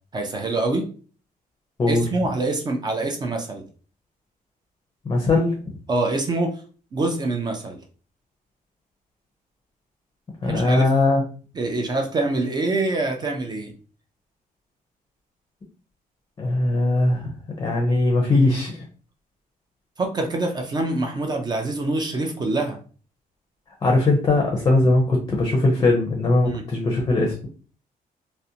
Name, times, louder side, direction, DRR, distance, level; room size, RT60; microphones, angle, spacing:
voice 1, 0.1-0.8 1.9-3.6 5.9-6.6 6.9-7.8 10.5-10.8 11.6-13.7 20.0-22.8 26.4-26.6, right 2 dB, 30° right, 3 dB, 0.4 m, -25 dB
voice 2, 5.0-5.6 10.4-11.2 16.4-17.3 17.6-18.8 23.8-27.3, left 2 dB, 25° left, 0 dB, 0.5 m, -20 dB
2.5 x 2.0 x 2.7 m, 0.39 s
cardioid pair, 145°, 15 cm